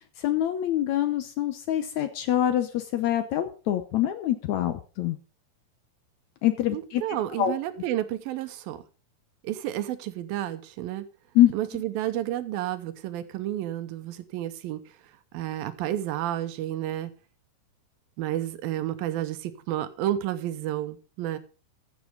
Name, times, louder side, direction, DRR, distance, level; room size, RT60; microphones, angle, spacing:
voice 1, 0.0-5.2 6.4-7.0 7.4-7.5 11.4-11.5, left 12 dB, 70° left, 9 dB, 1.8 m, -25 dB
voice 2, 6.7-8.8 9.4-11.1 11.5-14.8 15.3-17.1 18.2-21.4, right 12 dB, 85° right, 12 dB, 2.7 m, -31 dB
15.0 x 7.6 x 5.2 m, 0.36 s
omnidirectional pair, 4.1 m